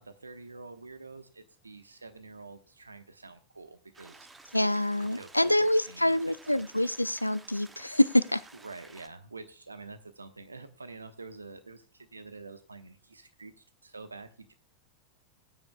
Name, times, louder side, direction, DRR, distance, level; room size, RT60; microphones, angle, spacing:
voice 1, 0.0-4.3 5.0-6.2 6.5-6.6 8.5-14.5, right 3 dB, 80° right, 9 dB, 1.1 m, -47 dB
sound 1, 3.9-9.1, right 3 dB, 15° right, 1.1 m, -54 dB
voice 2, 4.5-8.4, left 1 dB, 85° left, 18 dB, 0.4 m, -26 dB
19.5 x 9.7 x 2.3 m, 0.34 s
figure-of-eight pair, 90°, 0 cm